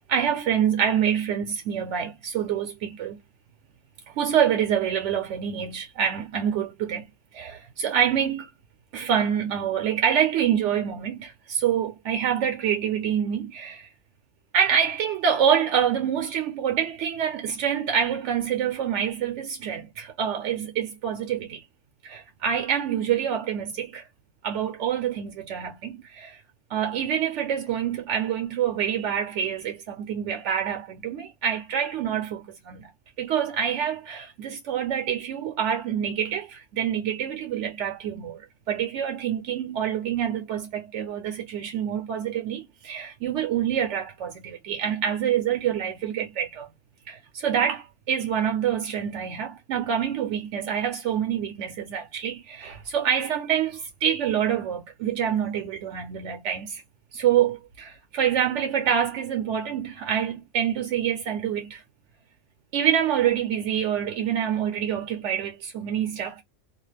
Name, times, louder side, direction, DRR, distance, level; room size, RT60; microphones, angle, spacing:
voice 1, 0.1-3.2 4.1-7.1 7.3-8.5 8.9-13.9 14.5-21.6 22.0-24.0 24.4-26.4 26.7-32.9 33.2-38.4 38.7-46.7 47.1-56.8 57.1-61.8 62.7-66.4, right 8 dB, 85° right, 0.9 m, -26 dB
2.5 x 2.3 x 3.2 m
omnidirectional pair, 1.2 m